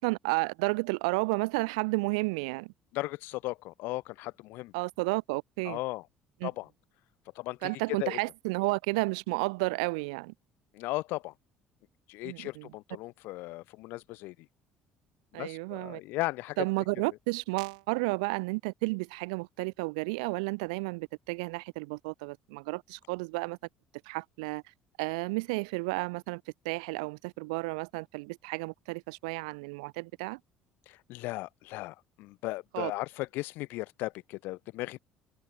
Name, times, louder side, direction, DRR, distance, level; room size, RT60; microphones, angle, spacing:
voice 1, 0.0-2.7 4.7-5.8 6.4-6.5 7.6-10.3 12.2-12.7 15.3-16.0 16.6-23.6 24.1-24.6 25.0-30.4 32.7-32.9, right 28 dB, 90° right, 0.6 m, -32 dB
voice 2, 2.9-4.7 5.6-6.0 6.4-6.7 7.4-8.2 10.7-11.3 12.1-14.4 15.3-16.7 30.9-35.0, left 20 dB, 75° left, 0.3 m, -36 dB
supercardioid pair, 80°, 4 cm